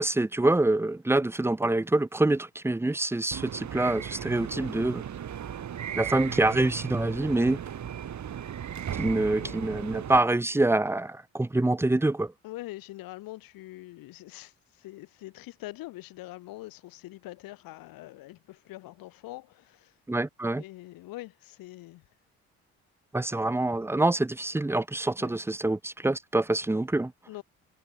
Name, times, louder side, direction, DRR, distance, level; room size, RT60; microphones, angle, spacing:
voice 1, 0.0-5.0 5.9-7.6 9.0-12.3 20.1-20.6 23.1-27.1, right 2 dB, 5° right, 0.7 m, -26 dB
sound 1, 3.3-10.2, right 9 dB, 55° right, 3.2 m, -36 dB
voice 2, 12.4-19.9 20.5-22.0 25.2-25.3 27.3-27.4, left 17 dB, 75° left, 7.1 m, -44 dB
hypercardioid pair, 60°, 35 cm